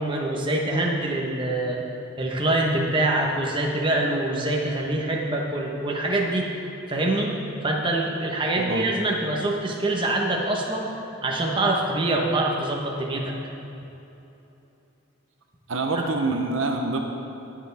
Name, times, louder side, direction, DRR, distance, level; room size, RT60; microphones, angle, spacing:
voice 1, 0.0-1.8 2.2-6.5 6.9-7.3 7.6-10.9 11.2-13.3, right 2 dB, 25° right, -1 dB, 1.1 m, -25 dB
voice 2, 15.7-17.0, right 3 dB, 75° right, 3 dB, 0.8 m, -26 dB
20.0 x 6.9 x 3.5 m, 3.0 s
head